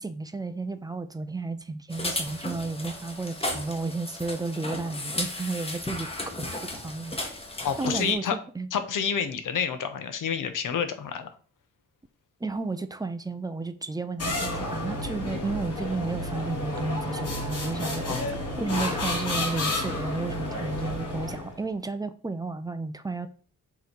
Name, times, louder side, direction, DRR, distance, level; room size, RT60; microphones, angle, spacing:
voice 1, 0.0-6.1 6.4-7.2 7.8-8.7 12.4-18.2 18.6-23.3, right 3 dB, 10° right, 10 dB, 0.5 m, -32 dB
sound 1, 1.9-8.1, left 1 dB, 20° left, 1.1 m, -34 dB
voice 2, 7.6-8.4 8.7-11.3 18.1-18.3, left 7 dB, 70° left, 9 dB, 1.0 m, -29 dB
sound 2, 14.2-21.6, left 1 dB, 50° left, 3.3 m, -31 dB
6.7 x 3.1 x 5.2 m, 0.41 s
wide cardioid pair, 145°, 32 cm